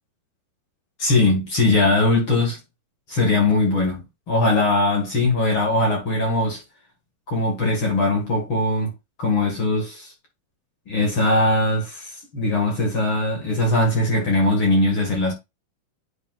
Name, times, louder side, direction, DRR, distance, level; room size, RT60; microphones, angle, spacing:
voice 1, 1.0-2.6 3.1-6.6 7.3-8.9 9.2-10.1 10.9-15.3, left 2 dB, 45° left, 1.9 m, -20 dB
10.5 x 5.3 x 2.4 m
omnidirectional pair, 4.3 m